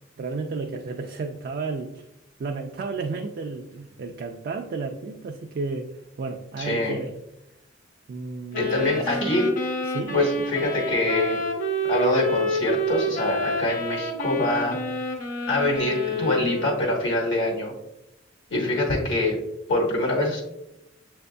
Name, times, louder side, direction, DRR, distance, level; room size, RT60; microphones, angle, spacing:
voice 1, 0.2-2.0 2.4-5.9 6.2-7.2 8.1-9.3 9.9-10.3, right 4 dB, 50° right, 3 dB, 0.3 m, -32 dB
voice 2, 6.6-7.0 8.6-9.4 10.1-11.4 11.9-14.8 15.5-17.7 18.5-19.4 19.7-20.4, left 2 dB, 70° left, -2 dB, 1.2 m, -24 dB
sound 1, 8.5-16.9, equal, 40° left, 0.8 m, -29 dB
7.2 x 2.6 x 2.2 m, 0.87 s
head